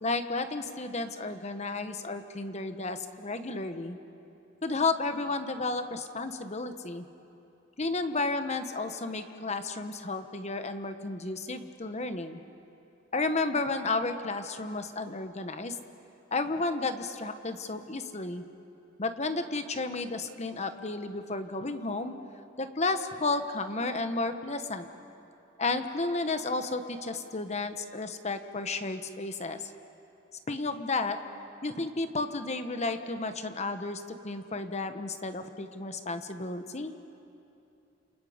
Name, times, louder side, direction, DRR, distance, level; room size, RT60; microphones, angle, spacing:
voice 1, 0.0-4.0 4.6-7.0 7.8-12.4 13.1-15.8 16.3-18.4 19.0-22.1 22.6-24.9 25.6-29.7 30.5-31.2 31.6-36.9, left 3 dB, 35° left, 8 dB, 1.2 m, -32 dB
30.0 x 28.0 x 5.1 m, 2.8 s
head